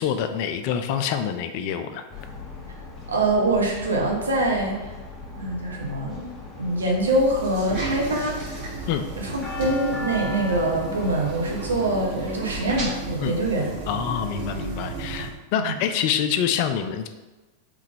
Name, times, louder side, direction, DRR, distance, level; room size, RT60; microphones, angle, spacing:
voice 1, 0.0-2.0 8.9-9.0 13.2-13.4 13.9-17.1, left 8 dB, 45° left, 9 dB, 0.3 m, -26 dB
sound 1, 2.1-11.9, left 4 dB, 20° left, 0.8 m, -38 dB
voice 2, 3.1-4.9 5.4-6.3 6.6-8.6 9.2-13.7 15.6-15.7, right 2 dB, 70° right, 0 dB, 0.8 m, -24 dB
sound 2, 7.1-15.3, right 3 dB, 45° right, 1.5 m, -34 dB
3.5 x 3.3 x 3.3 m, 1.2 s
figure-of-eight pair, 90°, 0 cm